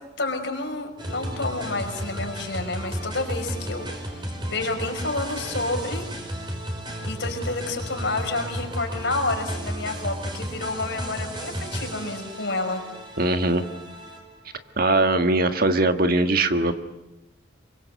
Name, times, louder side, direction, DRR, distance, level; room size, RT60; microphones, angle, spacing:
voice 1, 0.2-6.0 7.0-12.8, left 2 dB, 65° left, 4 dB, 5.5 m, -29 dB
sound 1, 1.0-14.5, equal, 25° right, 5.2 m, -33 dB
voice 2, 13.2-13.6 14.8-16.7, right 2 dB, 50° right, 8 dB, 1.7 m, -21 dB
27.0 x 24.0 x 7.9 m, 0.99 s
head